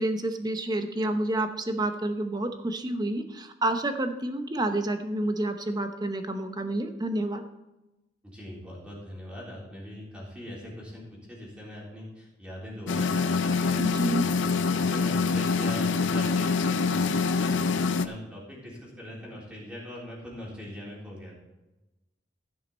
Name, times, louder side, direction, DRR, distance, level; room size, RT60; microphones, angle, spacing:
voice 1, 0.0-7.4 13.8-14.3, right 1 dB, 20° right, 7 dB, 0.8 m, -29 dB
voice 2, 8.2-21.4, equal, 5° right, -5 dB, 3.6 m, -41 dB
sound 1, 12.9-18.1, left 4 dB, 80° left, 0.6 m, -25 dB
15.5 x 6.4 x 4.2 m, 1.0 s
head